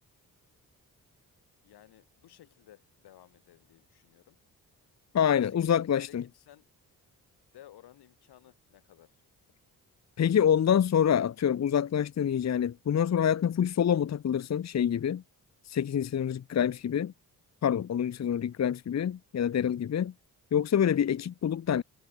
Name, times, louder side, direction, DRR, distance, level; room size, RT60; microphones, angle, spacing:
voice 1, 1.6-4.4 5.2-6.7 7.5-9.2, left 13 dB, 90° left, 3.9 m, -56 dB
voice 2, 5.1-6.2 10.2-15.2 15.7-17.1 17.6-20.1 20.5-21.8, left 9 dB, 45° left, 0.7 m, -26 dB
supercardioid pair, 55°, 38 cm